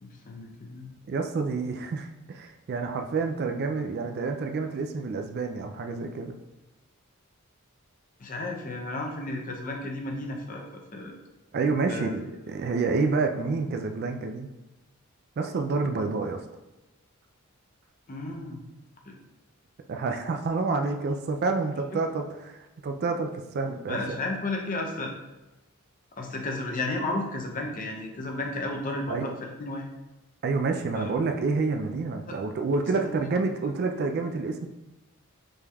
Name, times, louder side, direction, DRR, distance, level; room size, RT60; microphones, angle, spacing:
voice 1, 0.0-0.9 8.2-11.1 11.9-12.1 18.1-18.6 19.1-19.2 23.9-25.1 26.2-29.8 30.9-31.1 32.3-32.4 33.1-33.2, left 2 dB, 35° left, 1 dB, 0.6 m, -33 dB
voice 2, 1.1-6.3 11.5-14.5 15.4-16.4 19.9-24.2 29.1-29.4 30.4-34.7, right 4 dB, 45° right, 5 dB, 0.3 m, -28 dB
5.2 x 3.3 x 2.3 m, 1.0 s
head